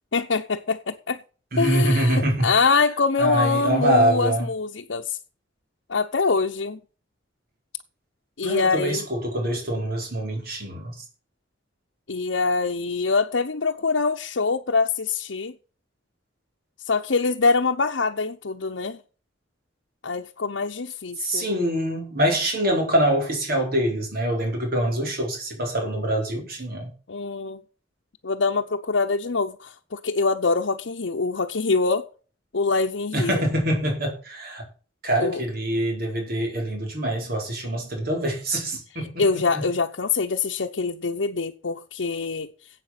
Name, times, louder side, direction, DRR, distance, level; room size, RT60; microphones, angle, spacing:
voice 1, 0.1-1.2 1.6-5.2 5.9-6.8 8.4-9.1 12.1-15.5 16.9-19.0 20.0-21.5 27.1-27.6 28.2-32.1 32.5-33.4 35.2-35.4 39.2-42.5, left 4 dB, 80° left, 0.9 m, -24 dB
voice 2, 1.5-2.5 3.2-4.5 8.4-10.9 21.2-26.9 33.1-34.7 35.0-39.2 39.5-39.6, right 1 dB, 55° right, 4.7 m, -24 dB
12.0 x 8.4 x 5.9 m
head